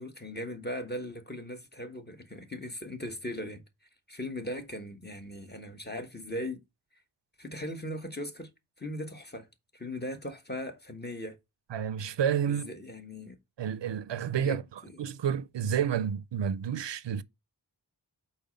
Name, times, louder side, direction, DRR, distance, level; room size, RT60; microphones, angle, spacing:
voice 1, 0.0-3.6 4.1-6.6 7.4-8.5 8.8-9.5 9.7-11.4 12.5-13.4 14.4-15.1, left 1 dB, 25° left, 1.3 m, -39 dB
voice 2, 11.7-12.7 13.6-14.6 15.0-17.2, right 8 dB, 90° right, 0.5 m, -30 dB
5.7 x 4.3 x 5.2 m
wide cardioid pair, 55°, 42 cm